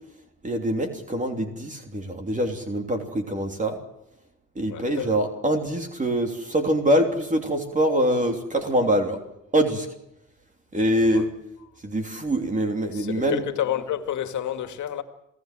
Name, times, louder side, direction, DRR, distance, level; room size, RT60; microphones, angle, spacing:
voice 1, 0.4-3.8 4.5-9.2 9.5-9.9 10.7-11.3 11.8-13.4, right 1 dB, 25° right, 3.1 m, -24 dB
voice 2, 4.7-5.2 10.9-11.3 12.9-15.0, left 10 dB, 75° left, 2.2 m, -30 dB
27.5 x 17.0 x 7.7 m
cardioid pair, 90°, 30 cm